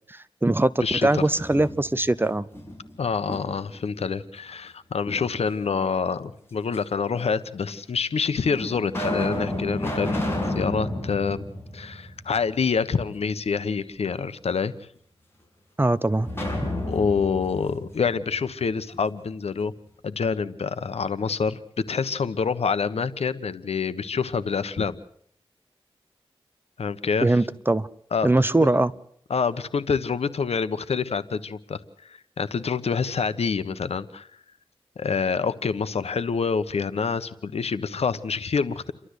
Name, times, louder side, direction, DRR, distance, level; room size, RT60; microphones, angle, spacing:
voice 1, 0.1-2.5 15.8-16.3 27.2-27.9 28.2-28.9, right 2 dB, 20° right, 16 dB, 0.9 m, -21 dB
voice 2, 0.8-1.3 3.0-11.4 11.7-14.7 16.9-19.7 20.0-21.6 21.9-25.0 26.8-27.4 28.1-28.3 28.6-28.7 29.3-34.3 35.0-38.9, left 5 dB, 85° left, 13 dB, 1.1 m, -27 dB
sound 1, 1.1-2.1 2.5-3.8 5.1-5.9 6.7-6.8 7.7-7.8 8.4-12.5 12.8-12.9 16.2-19.0, left 1 dB, 25° left, 6.5 m, -31 dB
29.5 x 12.5 x 8.2 m, 0.64 s
wide cardioid pair, 65°, 10 cm